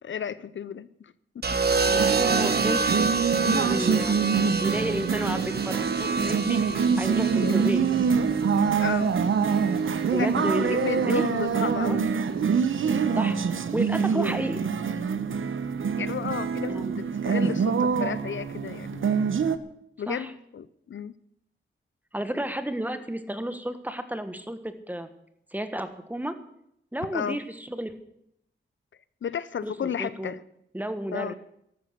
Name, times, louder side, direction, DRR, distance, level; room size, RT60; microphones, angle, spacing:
voice 1, 0.0-1.5 1.8-2.0 7.4-7.6 8.8-9.1 10.1-12.0 16.0-19.1 20.0-21.1 27.1-27.4 29.2-30.4 31.1-31.3, left 8 dB, 75° left, 17 dB, 0.6 m, -33 dB
sound 1, 1.4-9.6 10.8-11.2, right 4 dB, 55° right, 1.4 m, -28 dB
voice 2, 1.9-2.8 3.4-4.2 4.6-7.8 10.1-11.2 11.8-12.0 13.1-14.6 16.7-16.9 20.1-20.3 22.1-25.1 25.5-26.3 26.9-27.9 29.6-29.7 30.0-30.3 30.7-31.3, right 1 dB, 10° right, 10 dB, 1.4 m, -32 dB
sound 2, 1.9-19.6, right 6 dB, 85° right, 0.9 m, -25 dB
13.5 x 12.0 x 6.8 m, 0.74 s
wide cardioid pair, 100°, 20 cm